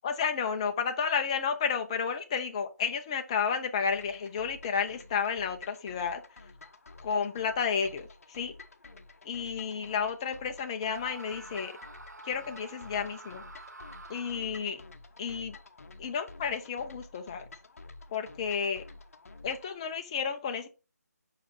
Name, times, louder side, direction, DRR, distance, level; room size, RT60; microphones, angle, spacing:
voice 1, 0.0-6.4 7.0-8.6 9.2-11.8 12.2-13.4 14.1-14.8 15.2-15.6 16.0-17.5 18.1-18.8 19.4-20.7, left 6 dB, 20° left, 0.7 m, -32 dB
sound 1, 3.9-19.8, left 3 dB, 55° left, 1.1 m, -51 dB
Screaming, 10.9-14.7, right 2 dB, 80° right, 1.0 m, -48 dB
5.8 x 5.0 x 4.3 m
figure-of-eight pair, 160°, 9 cm